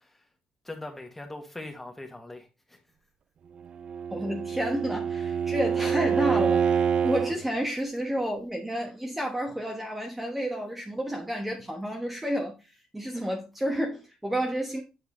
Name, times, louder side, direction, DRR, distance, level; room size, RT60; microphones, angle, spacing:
voice 1, 0.6-2.8, left 2 dB, 10° left, 1.7 m, -41 dB
Bowed string instrument, 3.7-7.4, right 7 dB, 50° right, 0.3 m, -26 dB
voice 2, 4.1-12.6 12.9-14.8, equal, 10° right, 1.1 m, -30 dB
8.1 x 4.7 x 3.1 m
cardioid pair, 100°, 2 cm